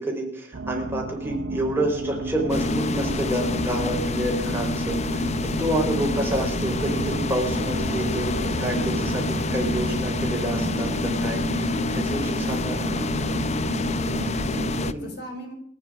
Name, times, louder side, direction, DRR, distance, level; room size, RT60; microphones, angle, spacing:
voice 1, 0.0-13.0 14.9-15.0, right 1 dB, 10° right, -1 dB, 4.1 m, -29 dB
sound 1, 0.5-14.9, right 3 dB, 80° right, 0.6 m, -32 dB
sound 2, 2.5-14.9, left 3 dB, 35° left, 0.6 m, -27 dB
voice 2, 5.7-6.3 14.0-15.5, equal, 60° left, 3 dB, 4.1 m, -37 dB
27.5 x 9.3 x 4.9 m, 0.64 s
head